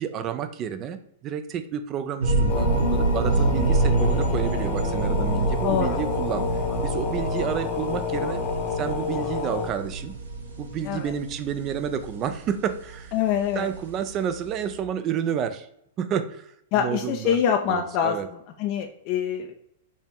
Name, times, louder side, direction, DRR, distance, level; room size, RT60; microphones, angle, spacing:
voice 1, 0.0-8.4 8.7-10.1 10.6-13.2 13.5-15.7 16.0-17.4 17.6-18.3, right 8 dB, 35° right, 10 dB, 0.5 m, -30 dB
sound 1, 2.2-14.8, right 2 dB, 80° right, 0.9 m, -27 dB
sound 2, 2.5-9.7, left 5 dB, 30° left, 0.9 m, -30 dB
voice 2, 5.6-6.0 10.9-11.0 13.1-13.7 16.7-18.2 18.6-19.6, left 8 dB, 50° left, 5 dB, 0.4 m, -24 dB
4.1 x 3.0 x 3.6 m, 0.73 s
hypercardioid pair, 115°, 0 cm